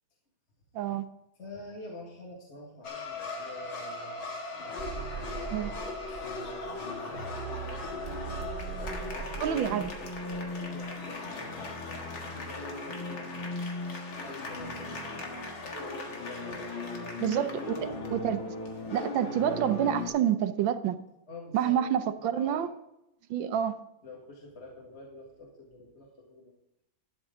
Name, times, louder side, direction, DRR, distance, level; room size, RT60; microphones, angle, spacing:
voice 1, 0.7-1.1 5.5-5.7 9.4-9.9 17.2-18.6 18.9-21.0 21.5-22.7 23.3-23.8, right 10 dB, 80° right, 1.5 m, -28 dB
voice 2, 1.4-4.3 4.6-8.2 8.6-13.3 13.6-13.7 14.2-17.5 21.3-22.7 24.0-26.5, left 1 dB, 35° left, 1.9 m, -47 dB
sound 1, 2.8-20.1, left 3 dB, 85° left, 2.5 m, -37 dB
sound 2, 4.8-10.9, right 7 dB, 50° right, 0.7 m, -41 dB
12.5 x 9.0 x 3.7 m
omnidirectional pair, 2.1 m